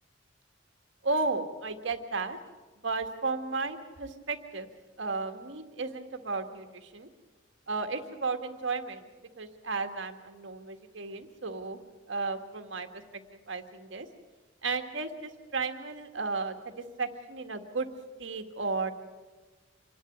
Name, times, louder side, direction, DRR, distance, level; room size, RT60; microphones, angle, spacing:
voice 1, 1.0-2.4 2.8-4.7 5.0-7.1 7.7-9.1 9.4-11.8 12.1-12.9 13.5-14.1 14.6-16.5 17.0-17.9 18.2-18.9, right 3 dB, 65° right, 6 dB, 1.7 m, -34 dB
26.0 x 11.0 x 9.5 m, 1.3 s
head